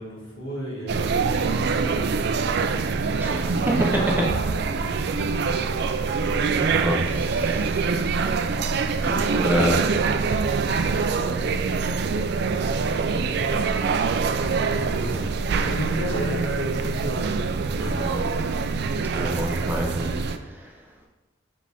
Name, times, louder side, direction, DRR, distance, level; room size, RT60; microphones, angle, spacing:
voice 1, 0.0-7.7 14.3-15.3 15.6-17.4, equal, 70° left, -5 dB, 2.1 m, -37 dB
sound 1, 0.9-20.4, right 4 dB, 55° right, 0.4 m, -24 dB
voice 2, 3.2-3.7 6.7-7.6 9.0-9.8 17.8-18.2 19.1-20.1, equal, 10° right, -1 dB, 0.7 m, -27 dB
5.7 x 4.9 x 3.5 m, 1.2 s
head